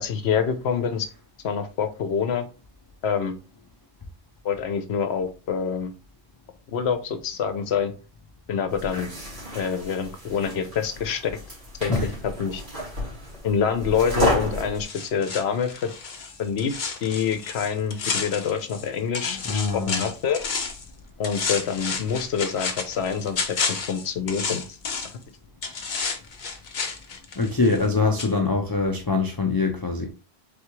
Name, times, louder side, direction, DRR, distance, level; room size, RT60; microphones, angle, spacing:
voice 1, 0.0-1.1 1.4-2.5 3.0-3.3 4.4-5.9 6.7-7.9 8.5-9.1 9.5-11.4 11.8-12.6 13.4-15.9 16.4-20.4 21.2-24.8, left 7 dB, 75° left, 0.9 m, -26 dB
sound 1, 8.7-14.8, equal, 45° right, 2.1 m, -31 dB
sound 2, 14.8-18.9 19.1-20.9 21.2-25.2 25.6-27.9 28.2-28.3, left 5 dB, 50° left, 0.8 m, -31 dB
voice 2, 19.3-20.0 27.4-30.1, left 3 dB, 30° left, 0.4 m, -24 dB
3.9 x 3.5 x 3.0 m
omnidirectional pair, 1.1 m